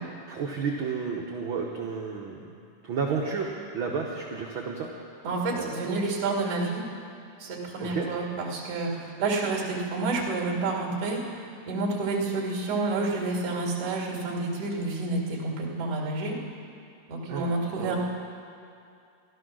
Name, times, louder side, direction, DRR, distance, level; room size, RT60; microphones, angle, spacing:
voice 1, 0.3-2.5 2.8-4.9 5.5-5.8 7.8-8.1 17.3-17.5 17.8-17.9, right 5 dB, 90° right, 0 dB, 1.1 m, -31 dB
voice 2, 5.2-6.8 7.4-16.4 17.1-18.0, right 3 dB, 55° right, -2 dB, 3.2 m, -29 dB
15.5 x 12.5 x 6.2 m, 2.5 s
omnidirectional pair, 3.7 m